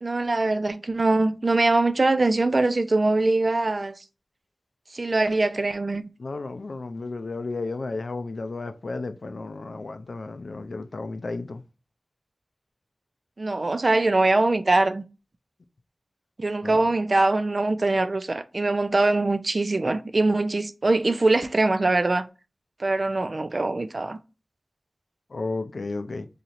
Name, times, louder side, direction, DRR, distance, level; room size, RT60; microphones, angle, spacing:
voice 1, 0.0-3.9 4.9-6.0 13.4-15.0 16.4-22.3 22.8-24.2, right 2 dB, 55° right, 0.3 m, -22 dB
voice 2, 6.2-11.6 16.6-16.8 25.3-26.3, left 3 dB, 85° left, 0.4 m, -33 dB
4.2 x 2.8 x 2.5 m
wide cardioid pair, 60°, 0 cm